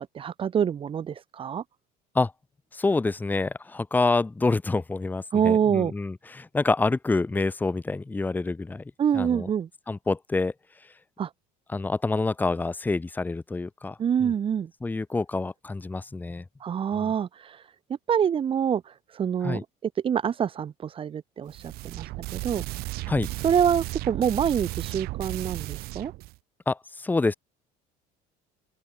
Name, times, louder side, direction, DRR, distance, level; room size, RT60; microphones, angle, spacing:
voice 1, 0.1-1.6 5.3-5.9 9.0-9.7 11.2-11.3 14.0-14.7 16.6-17.7 18.1-22.6 23.4-26.1, right 8 dB, 30° right, 2.9 m, -26 dB
voice 2, 2.7-8.8 9.1-9.5 9.9-10.5 11.7-14.3 14.8-16.4 16.9-17.1 19.4-19.6 23.1-23.3 26.7-27.3, left 3 dB, 10° left, 1.3 m, -27 dB
sound 1, 21.5-26.4, right 20 dB, 65° right, 4.3 m, -34 dB
open air
cardioid pair, 140°, 17 cm